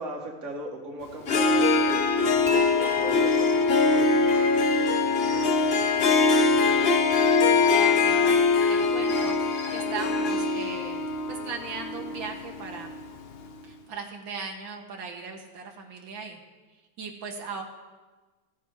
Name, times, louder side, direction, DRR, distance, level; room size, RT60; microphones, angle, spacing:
voice 1, 0.0-5.7, right 2 dB, 40° right, 0 dB, 1.9 m, -39 dB
Harp, 1.2-13.1, left 4 dB, 60° left, 0.6 m, -23 dB
Dishes pots and pans / Chink clink, 2.5-4.6, left 1 dB, 10° right, 2.6 m, -36 dB
sound 1, 2.7-10.3, left 3 dB, 30° left, 1.4 m, -40 dB
voice 2, 7.2-8.4 8.7-9.4 9.7-11.0 11.3-12.9 13.6-16.4 17.0-17.6, right 5 dB, 80° right, 2 dB, 2.2 m, -38 dB
16.0 x 10.0 x 4.7 m, 1.3 s
omnidirectional pair, 2.1 m